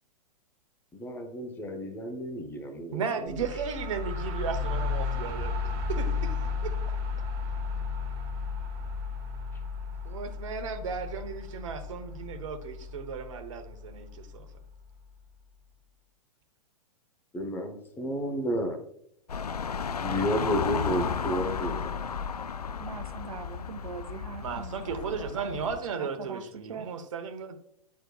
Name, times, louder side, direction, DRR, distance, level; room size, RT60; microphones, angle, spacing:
voice 1, 0.9-3.4 17.3-18.8 20.0-21.9, equal, 10° left, 0.9 m, -31 dB
voice 2, 2.9-5.5 5.9-6.4 6.6-6.7 10.0-14.5 24.4-27.6, right 6 dB, 55° right, 1.0 m, -35 dB
sound 1, 3.3-14.9, left 4 dB, 35° right, 1.4 m, -34 dB
sound 2, 19.3-25.8, left 6 dB, 80° left, 0.4 m, -33 dB
voice 3, 22.8-26.9, right 6 dB, 70° right, 0.6 m, -42 dB
10.5 x 4.5 x 2.3 m
figure-of-eight pair, 110°, 20 cm